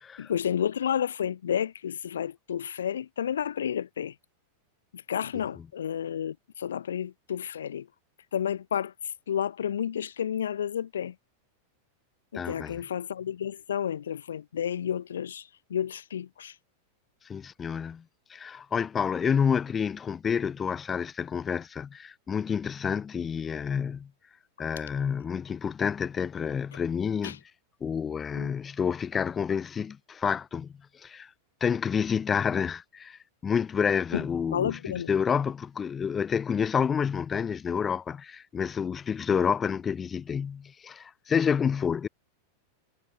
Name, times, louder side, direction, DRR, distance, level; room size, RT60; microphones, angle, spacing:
voice 1, 0.2-4.1 4.9-7.9 8.3-8.9 9.3-11.1 12.3-16.5 27.2-27.4 28.3-28.5 34.1-34.2 34.5-35.1, left 9 dB, 65° left, 1.1 m, -31 dB
voice 2, 12.3-12.8 17.2-18.0 18.3-24.1 24.6-27.4 27.8-31.3 31.6-42.1, left 7 dB, 20° left, 1.0 m, -29 dB
figure-of-eight pair, 90°, 0 cm